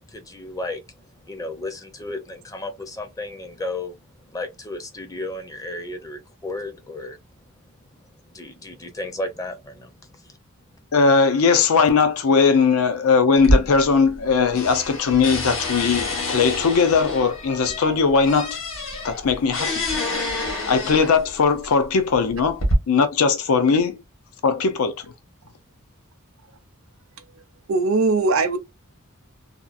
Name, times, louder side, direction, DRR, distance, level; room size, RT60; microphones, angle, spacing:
voice 1, 0.0-7.2 8.3-10.4, left 2 dB, 15° left, 0.5 m, -34 dB
voice 2, 10.9-18.6 19.0-19.8 20.2-20.3 20.7-24.0 24.4-25.1, left 5 dB, 80° left, 0.5 m, -19 dB
sound 1, 13.4-14.3 14.6-21.4 22.1-22.7, left 1 dB, 60° left, 1.3 m, -27 dB
voice 3, 27.7-28.6, right 3 dB, 70° right, 0.5 m, -20 dB
2.8 x 2.3 x 2.4 m
head